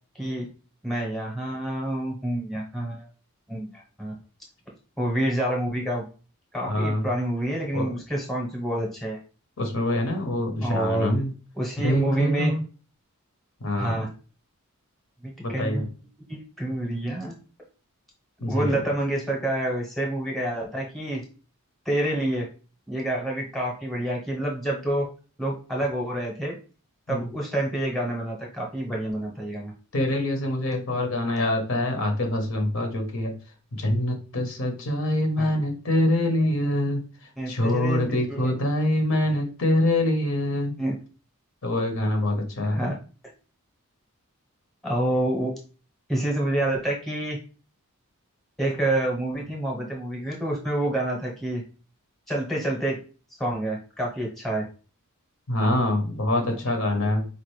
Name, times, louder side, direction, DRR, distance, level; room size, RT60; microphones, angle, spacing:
voice 1, 0.8-3.1 3.5-4.2 5.0-6.0 6.5-9.2 10.6-11.1 11.6-12.5 13.8-14.1 15.2-15.8 16.3-17.4 18.5-21.2 21.8-22.5 22.9-25.1 25.4-26.6 27.1-29.7 35.4-35.5 37.4-38.5 40.8-40.9 42.6-43.0 44.8-45.5 46.1-47.4 48.6-51.6 52.3-53.0 53.4-54.6, right 1 dB, ahead, -2 dB, 0.9 m, -28 dB
voice 2, 6.7-7.1 7.7-7.9 9.6-11.3 11.8-12.6 13.6-14.0 15.4-15.9 18.4-18.8 27.1-27.3 29.9-33.3 33.7-37.0 37.5-40.8 41.6-42.8 55.5-57.3, left 1 dB, 65° left, 3 dB, 0.9 m, -25 dB
4.4 x 2.5 x 3.1 m, 0.36 s
head